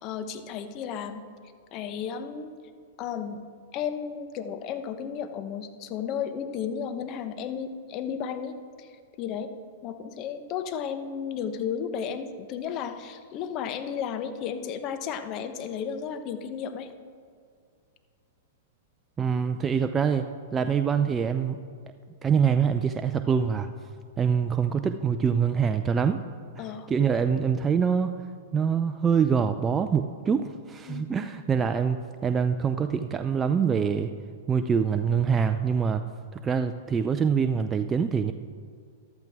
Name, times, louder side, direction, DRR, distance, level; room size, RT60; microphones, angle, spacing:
voice 1, 0.0-1.2 1.7-2.5 3.0-3.4 3.7-8.9 9.2-9.5 9.8-16.9 26.6-26.9 30.8-31.3, left 7 dB, 40° left, 9 dB, 1.0 m, -33 dB
voice 2, 19.2-20.3 20.5-21.6 22.2-23.7 24.2-26.2 26.6-28.1 28.5-34.1 34.5-36.0 36.3-38.3, right 6 dB, 20° right, 8 dB, 0.4 m, -25 dB
14.5 x 12.0 x 3.6 m, 2.2 s
hypercardioid pair, 120°, 0 cm